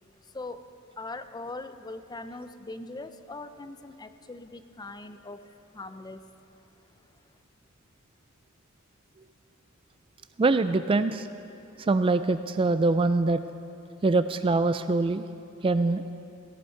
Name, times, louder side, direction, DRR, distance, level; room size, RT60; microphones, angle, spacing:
voice 1, 1.0-5.5 5.7-6.2, left 2 dB, 20° left, 10 dB, 0.6 m, -40 dB
voice 2, 10.4-11.3 11.9-13.4 14.0-15.2 15.6-16.0, right 3 dB, 25° right, 11 dB, 0.3 m, -23 dB
17.0 x 16.0 x 4.6 m, 2.6 s
head